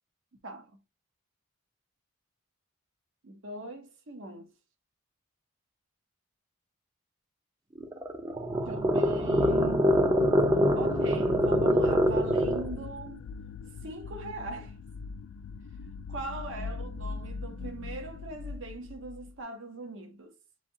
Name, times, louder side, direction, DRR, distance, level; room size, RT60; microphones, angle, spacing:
voice 1, 3.2-4.5 8.7-9.9 10.7-13.3 13.8-14.8 16.1-20.3, right 2 dB, 60° right, 0.8 m, -40 dB
sound 1, 7.8-12.7, equal, 15° right, 0.4 m, -25 dB
sound 2, 8.7-19.3, left 5 dB, 70° left, 0.3 m, -40 dB
7.1 x 2.7 x 2.7 m
head